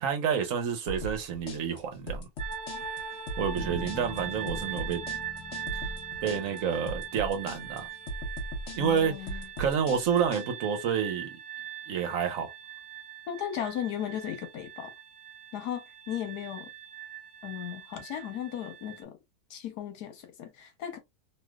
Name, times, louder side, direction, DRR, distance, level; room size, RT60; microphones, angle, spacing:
voice 1, 0.0-2.3 3.4-5.0 6.2-7.9 8.8-9.1 9.6-11.4 11.9-12.5, right 7 dB, 60° right, 1.1 m, -29 dB
sound 1, 0.9-10.5, right 1 dB, 50° left, 1.0 m, -38 dB
sound 2, 2.4-19.0, right 8 dB, 35° right, 0.8 m, -41 dB
Bass guitar, 3.6-7.9, left 3 dB, 20° left, 1.2 m, -46 dB
voice 2, 8.8-9.5 13.3-14.9 15.5-16.7 17.4-19.2 19.5-21.0, left 10 dB, 80° left, 1.4 m, -36 dB
3.2 x 2.8 x 2.3 m
omnidirectional pair, 1.7 m